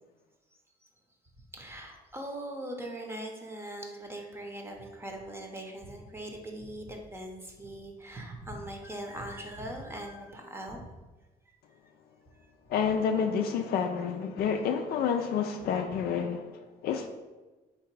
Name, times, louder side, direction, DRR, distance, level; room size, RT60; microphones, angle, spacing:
voice 1, 1.5-10.9 12.3-12.4, right 1 dB, 15° right, 0.7 m, -41 dB
voice 2, 12.7-17.1, left 7 dB, 65° left, 0.4 m, -29 dB
3.8 x 2.9 x 4.6 m
cardioid pair, 110°, 17 cm